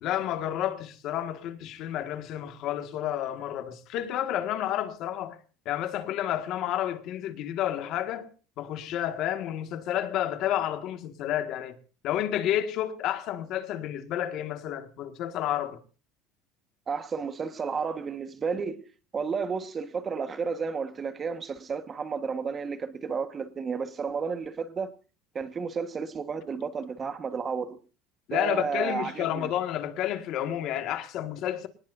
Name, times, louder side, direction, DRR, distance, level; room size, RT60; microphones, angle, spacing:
voice 1, 0.0-5.4 5.7-8.3 8.6-11.8 12.0-15.8 28.3-31.7, left 11 dB, 50° left, 1.8 m, -30 dB
voice 2, 16.9-18.9 19.1-24.9 25.3-27.8 28.3-29.5, right 5 dB, 25° right, 1.4 m, -32 dB
25.0 x 19.5 x 2.7 m
cardioid pair, 155°, 0 cm